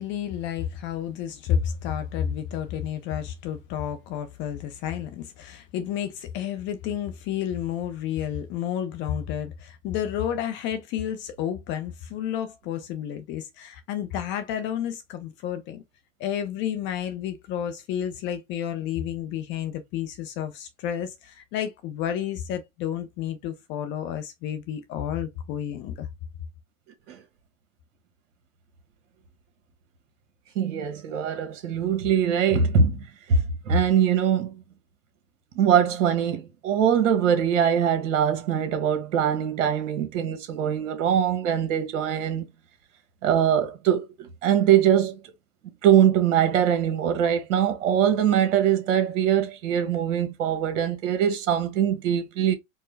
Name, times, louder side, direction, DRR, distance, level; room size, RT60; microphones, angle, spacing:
voice 1, 0.0-15.8 16.2-26.1, left 9 dB, 30° left, 0.6 m, -31 dB
voice 2, 30.5-33.4 33.7-34.6 35.5-42.5 43.2-45.2 45.8-52.5, right 8 dB, 60° right, 1.5 m, -22 dB
4.6 x 2.1 x 3.2 m
hypercardioid pair, 125°, 41 cm